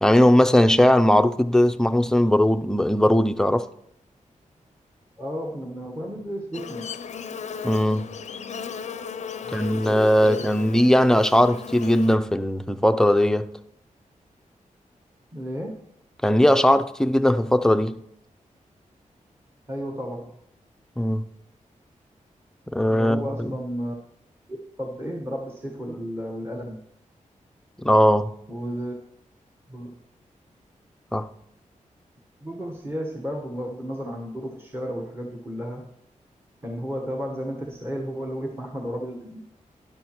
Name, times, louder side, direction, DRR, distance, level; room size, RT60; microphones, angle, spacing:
voice 1, 0.0-3.7 7.6-8.2 9.5-13.5 16.2-18.0 21.0-21.3 22.7-23.5 27.8-28.4 31.1-31.3, left 1 dB, 5° left, 0.4 m, -19 dB
voice 2, 5.2-6.9 9.4-10.5 15.3-15.8 19.7-20.3 22.9-23.9 24.8-26.8 28.5-28.9 29.7-30.0 32.4-35.9 36.6-39.4, equal, 20° right, 1.1 m, -33 dB
Buzz, 6.5-12.2, left 6 dB, 60° left, 0.4 m, -36 dB
12.0 x 11.0 x 3.0 m
wide cardioid pair, 120°, 13 cm